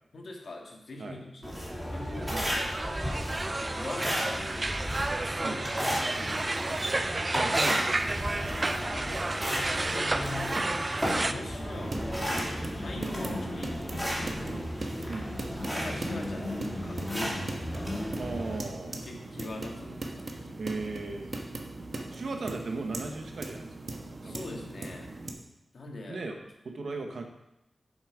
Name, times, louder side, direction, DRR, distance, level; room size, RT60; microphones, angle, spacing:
voice 1, 0.1-2.3 3.0-7.1 8.4-10.8 11.0-14.7 15.6-18.0 18.9-20.9 24.2-25.2 25.7-26.4 26.9-27.0, left 2 dB, 65° left, 0 dB, 1.8 m, -43 dB
sound 1, 1.4-18.6, equal, ahead, 2.5 m, -34 dB
sound 2, 2.1-11.3, right 2 dB, 30° right, 0.5 m, -31 dB
voice 2, 2.2-2.6 5.4-5.6 7.3-8.2 13.3-13.5 14.5-14.7 15.1-15.3 17.2-17.4 18.2-19.0 20.6-21.3 22.1-23.9 24.2-24.4 26.1-26.4 26.6-27.2, right 3 dB, 75° right, 3 dB, 1.2 m, -37 dB
sound 3, 11.6-25.3, right 2 dB, 50° right, 1.2 m, -40 dB
7.5 x 7.2 x 5.0 m, 0.89 s
wide cardioid pair, 95°, 0 cm